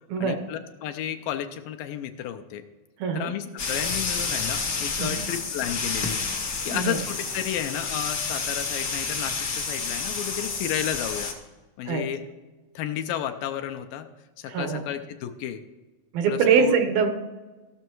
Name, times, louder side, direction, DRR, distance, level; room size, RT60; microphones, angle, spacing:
voice 1, 0.2-2.6 3.1-6.2 6.6-11.3 11.8-12.2 12.8-14.1 14.4-15.6 16.3-16.8, left 11 dB, 75° left, 6 dB, 2.2 m, -32 dB
voice 2, 3.0-3.3 5.0-5.2 6.7-7.0 11.9-12.0 14.5-14.8 16.1-17.1, right 6 dB, 75° right, 6 dB, 2.9 m, -23 dB
sound 1, 3.6-11.3, left 4 dB, 55° left, 1.1 m, -30 dB
16.0 x 6.5 x 4.6 m, 1.2 s
omnidirectional pair, 4.3 m